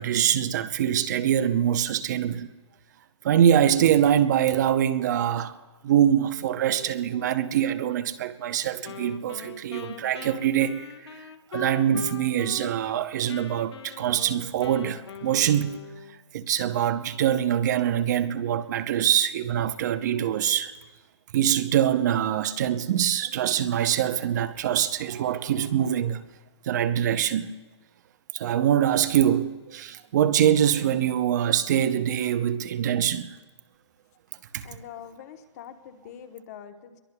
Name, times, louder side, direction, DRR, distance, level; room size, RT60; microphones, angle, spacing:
voice 1, 0.0-2.5 3.2-5.6 5.8-10.9 11.2-11.3 11.5-15.8 16.3-20.7 21.3-26.2 26.6-27.5 28.3-33.4 34.5-34.7, right 10 dB, 40° right, 0.7 m, -24 dB
Wind instrument woodwind instrument, 8.8-13.0 13.3-16.2, left 8 dB, 60° left, 1.1 m, -42 dB
voice 2, 34.6-37.0, left 9 dB, 35° left, 1.1 m, -44 dB
22.5 x 22.0 x 2.3 m
hypercardioid pair, 155°, 15 cm